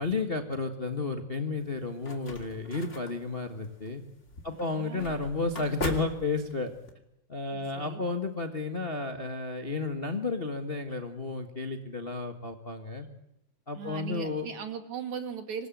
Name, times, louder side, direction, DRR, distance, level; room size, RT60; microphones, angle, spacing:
voice 1, 0.0-4.0 4.4-6.7 7.3-13.1 13.7-14.4, left 3 dB, 75° left, 5 dB, 0.5 m, -32 dB
sound 1, 1.6-6.9, left 2 dB, 20° left, 2.4 m, -40 dB
voice 2, 4.5-5.1 7.5-8.0 13.8-15.7, right 7 dB, 55° right, 7 dB, 3.5 m, -39 dB
25.5 x 21.0 x 9.2 m, 0.85 s
omnidirectional pair, 4.1 m